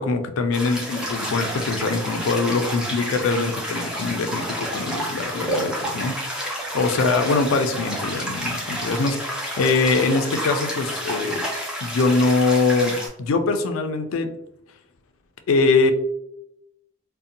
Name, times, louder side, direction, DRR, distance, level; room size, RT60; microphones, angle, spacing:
voice 1, 0.0-11.4 11.8-14.3 15.5-15.9, left 3 dB, 80° left, 7 dB, 0.4 m, -23 dB
sound 1, 0.5-13.1, equal, 5° right, 0.5 m, -30 dB
2.7 x 2.1 x 2.5 m, 0.82 s
head